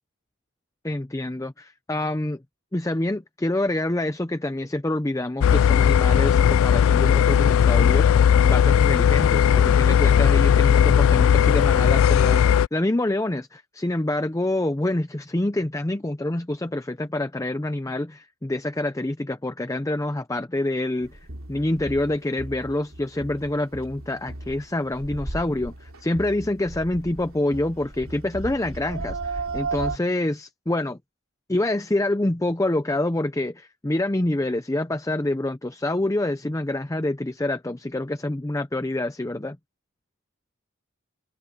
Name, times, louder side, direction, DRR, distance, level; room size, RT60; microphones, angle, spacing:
voice 1, 0.8-2.4 2.7-21.2 21.5-31.0 31.5-39.6, left 1 dB, 15° left, 0.6 m, -26 dB
sound 1, 5.4-12.7, left 8 dB, 75° left, 0.3 m, -17 dB
sound 2, 21.0-30.0, right 3 dB, 85° right, 2.9 m, -35 dB
head